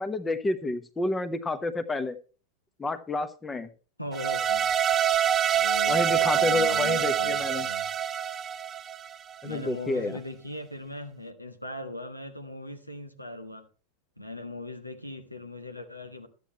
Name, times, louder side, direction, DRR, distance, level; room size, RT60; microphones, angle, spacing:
voice 1, 0.0-2.2 2.8-3.7 5.9-7.7 9.4-10.2, left 2 dB, 15° left, 1.0 m, -29 dB
voice 2, 4.0-4.7 5.5-7.9 9.4-13.7 14.2-16.3, left 1 dB, 90° left, 1.5 m, -39 dB
sound 1, 4.1-9.3, right 9 dB, 25° right, 0.5 m, -26 dB
13.0 x 8.4 x 4.4 m
figure-of-eight pair, 90°, 0 cm